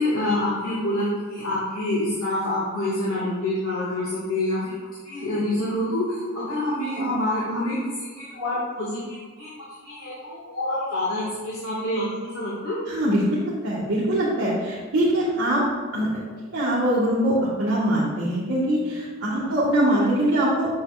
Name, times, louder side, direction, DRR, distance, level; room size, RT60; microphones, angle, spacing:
voice 1, 0.0-4.6 5.0-12.8, left 1 dB, 75° left, -9 dB, 2.0 m, -27 dB
voice 2, 12.9-15.6 15.9-16.1 16.5-20.7, right 1 dB, 60° right, -8 dB, 1.7 m, -22 dB
8.0 x 7.5 x 2.4 m, 1.5 s
head